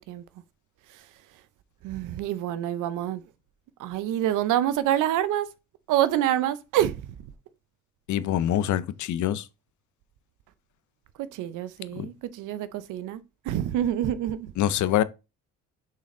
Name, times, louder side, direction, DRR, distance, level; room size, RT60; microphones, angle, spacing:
voice 1, 1.8-3.2 3.8-5.5 5.9-7.0 11.2-14.5, right 12 dB, 90° right, 0.7 m, -27 dB
voice 2, 8.1-9.5 11.9-12.1 14.6-15.0, left 11 dB, 75° left, 0.6 m, -25 dB
6.3 x 4.2 x 3.8 m
cardioid pair, 90°, 30 cm